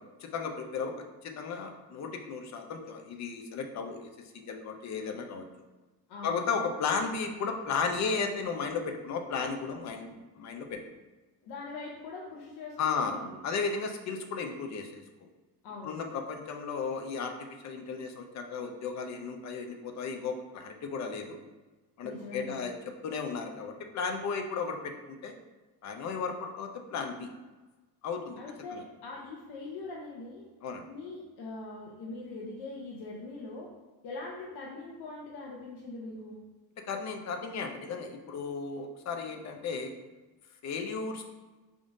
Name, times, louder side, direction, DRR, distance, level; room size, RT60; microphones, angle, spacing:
voice 1, 0.2-5.5 6.2-10.8 12.8-13.1 13.4-15.0 15.8-21.4 22.0-22.8 23.0-25.3 25.8-27.3 28.0-28.4 28.7-28.8 30.6-30.8 36.8-39.9 40.6-41.2, left 5 dB, 45° left, 5 dB, 0.6 m, -34 dB
voice 2, 6.1-6.4 11.5-13.3 15.6-16.0 22.0-22.7 28.4-30.4 30.9-33.7 34.0-36.4, left 3 dB, 75° left, -2 dB, 0.8 m, -42 dB
5.0 x 3.7 x 2.5 m, 1.2 s
cardioid pair, 155°, 40 cm